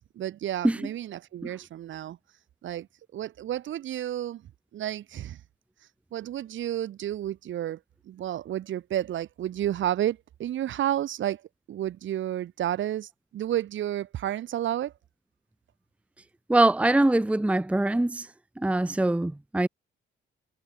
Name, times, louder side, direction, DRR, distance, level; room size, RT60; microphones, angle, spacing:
voice 1, 0.0-2.2 2.6-2.9 3.1-4.4 4.7-5.4 6.1-7.8 8.0-11.4 11.7-14.9, right 12 dB, 75° right, 4.9 m, -31 dB
voice 2, 16.5-18.3 18.6-19.7, right 2 dB, 5° right, 0.8 m, -23 dB
cardioid pair, 90°, 20 cm